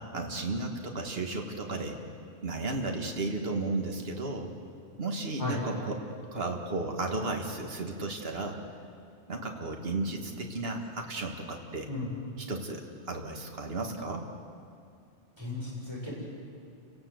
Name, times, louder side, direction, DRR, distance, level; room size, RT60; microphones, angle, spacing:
voice 1, 0.0-2.0 2.4-4.5 5.0-6.0 6.3-8.6 9.3-11.9 12.4-14.3, right 2 dB, 55° right, 2 dB, 2.2 m, -34 dB
voice 2, 15.4-16.1, left 2 dB, 20° right, -5 dB, 7.0 m, -35 dB
29.5 x 19.0 x 7.9 m, 2.4 s
omnidirectional pair, 1.2 m